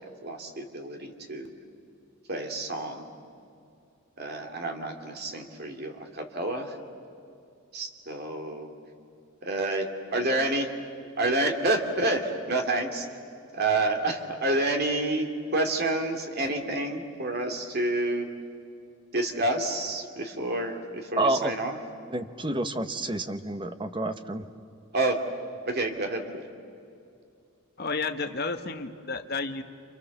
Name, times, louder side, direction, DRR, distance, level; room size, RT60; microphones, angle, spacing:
voice 1, 0.2-1.5 2.3-3.1 4.2-6.7 7.7-8.7 9.4-10.7 11.2-13.1 13.5-18.3 19.1-21.8 24.9-25.2 25.7-26.4, right 2 dB, 45° right, 4 dB, 2.5 m, -29 dB
voice 2, 21.2-21.5 22.1-24.4, right 1 dB, 20° right, 9 dB, 1.0 m, -29 dB
voice 3, 27.8-29.6, left 4 dB, 45° left, 6 dB, 1.3 m, -31 dB
29.5 x 28.0 x 7.2 m, 2.5 s
head